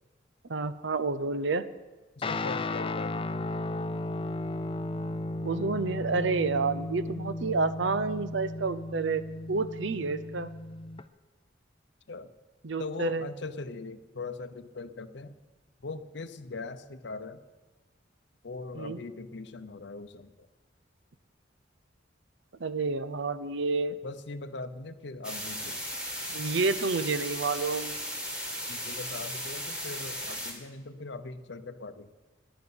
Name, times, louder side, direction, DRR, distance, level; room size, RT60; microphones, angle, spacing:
voice 1, 0.5-1.6 5.4-9.2 9.5-10.5 12.6-13.3 18.7-19.0 22.6-24.0 26.3-28.0, right 4 dB, 70° right, 13 dB, 0.7 m, -29 dB
voice 2, 2.2-3.5 12.1-12.3 12.8-15.4 15.8-17.4 18.4-20.5 24.0-25.8 28.7-32.1, left 3 dB, 65° left, 12 dB, 0.7 m, -40 dB
Guitar, 2.2-11.0, left 2 dB, 30° left, 0.5 m, -35 dB
sound 1, 25.2-30.5, equal, 5° right, 2.3 m, -36 dB
11.0 x 10.5 x 7.9 m, 1.2 s
head